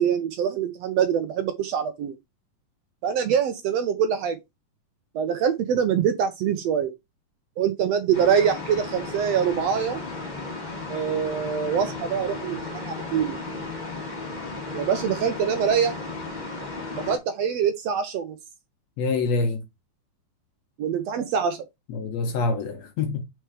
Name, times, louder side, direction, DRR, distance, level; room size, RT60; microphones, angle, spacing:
voice 1, 0.0-2.1 3.0-4.4 5.1-6.9 7.6-10.0 10.9-12.6 12.8-13.4 14.7-15.9 17.1-18.4 20.8-21.6, right 8 dB, 80° right, 1.5 m, -24 dB
sound 1, 8.1-17.2, left 3 dB, 20° left, 1.2 m, -34 dB
voice 2, 19.0-19.6 21.9-23.2, left 3 dB, 70° left, 1.8 m, -26 dB
4.8 x 4.4 x 4.8 m
omnidirectional pair, 3.7 m